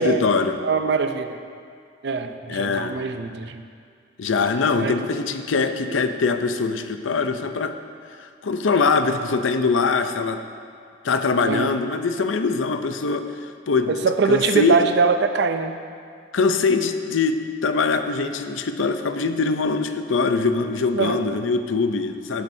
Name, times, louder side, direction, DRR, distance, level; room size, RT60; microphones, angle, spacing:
voice 1, 0.0-0.6 2.5-3.0 4.2-7.7 8.2-10.4 11.0-13.9 14.3-14.9 16.3-22.4, left 4 dB, 85° left, 8 dB, 0.6 m, -22 dB
voice 2, 0.6-1.4 2.0-3.6 4.8-5.0 5.9-6.0 11.4-11.7 13.9-15.8 21.0-21.2, right 4 dB, 60° right, 8 dB, 0.5 m, -22 dB
11.5 x 10.5 x 2.7 m, 2.2 s
head